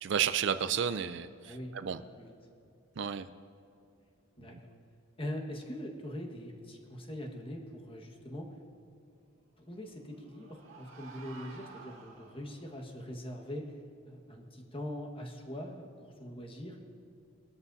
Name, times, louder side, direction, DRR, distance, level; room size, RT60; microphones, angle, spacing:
voice 1, 0.0-2.0 3.0-3.3, right 8 dB, 60° right, 11 dB, 0.4 m, -32 dB
voice 2, 1.4-2.3 4.4-4.7 5.2-8.5 9.6-13.7 14.1-16.8, equal, 25° left, 1 dB, 1.5 m, -42 dB
sound 1, 9.8-12.8, right 4 dB, 90° right, 2.0 m, -52 dB
21.0 x 13.0 x 2.7 m, 2.6 s
head